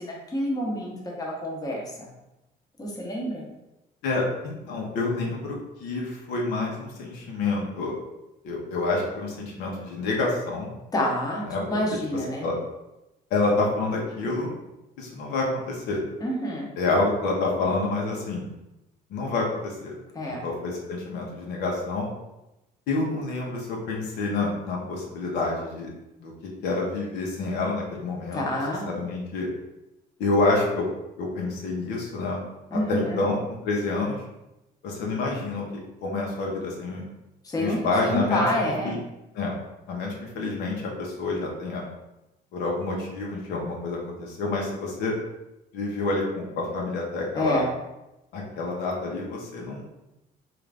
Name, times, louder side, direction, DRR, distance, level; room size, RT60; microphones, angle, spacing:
voice 1, 0.0-2.1 2.8-3.4 10.9-12.5 16.2-16.7 20.1-20.5 28.3-28.9 32.7-33.2 37.4-39.0 47.3-47.7, left 1 dB, 20° left, -2 dB, 0.9 m, -28 dB
voice 2, 4.0-7.9 8.4-10.7 11.5-11.6 11.9-12.0 12.4-12.5 13.3-14.5 15.0-16.0 16.8-18.5 19.1-19.9 20.2-22.1 22.9-25.9 26.2-28.4 28.8-29.5 30.2-30.8 31.2-32.4 32.7-33.4 33.6-34.2 34.8-35.6 36.0-37.1 37.6-38.5 38.8-39.0 39.3-39.6 39.9-41.8 42.5-45.1 45.7-47.6 48.3-49.8, left 3 dB, 85° left, -2 dB, 0.9 m, -28 dB
3.7 x 2.5 x 3.4 m, 0.95 s
cardioid pair, 110°, 17 cm